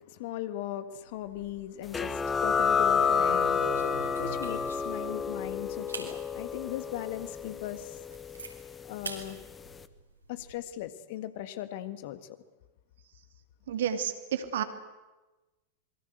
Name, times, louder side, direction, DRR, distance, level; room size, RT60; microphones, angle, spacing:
voice 1, 0.0-3.6 4.2-8.0 8.9-9.4 10.3-12.4, left 13 dB, 50° left, 1.7 m, -38 dB
sound 1, 1.1-1.8 2.1-2.4 2.9-5.0 5.4-5.5 5.9-6.1 6.7-6.8 7.3-7.4 7.7-8.5 9.0-9.2 9.6-10.5, right 3 dB, 80° right, 5.1 m, -41 dB
sound 2, 1.9-9.2, left 6 dB, 15° left, 1.4 m, -30 dB
voice 2, 13.7-14.6, right 9 dB, 60° right, 2.5 m, -30 dB
27.0 x 22.5 x 8.1 m
figure-of-eight pair, 90°, 0 cm